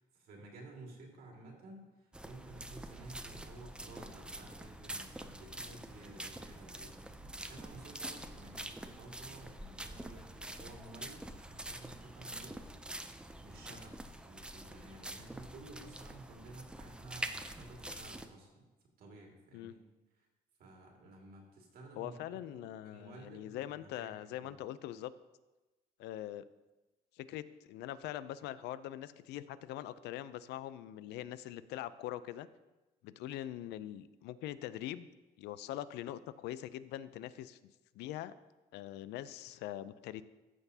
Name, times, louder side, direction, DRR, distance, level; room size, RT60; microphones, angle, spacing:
voice 1, 0.0-6.9 7.4-12.7 13.1-18.6 19.0-19.8 20.2-20.3 20.6-24.1 24.4-24.6, right 2 dB, 65° right, 0 dB, 2.1 m, -53 dB
sound 1, 2.1-18.3, right 1 dB, 5° right, 0.5 m, -46 dB
sound 2, 2.4-14.3, right 2 dB, 45° right, 1.2 m, -61 dB
voice 2, 22.0-25.1 26.0-26.4 27.1-32.5 33.0-35.1 35.4-37.6 37.9-38.3 38.7-40.2, left 13 dB, 80° left, 15 dB, 0.4 m, -43 dB
14.5 x 6.1 x 2.8 m, 1.1 s
cardioid pair, 110°, 17 cm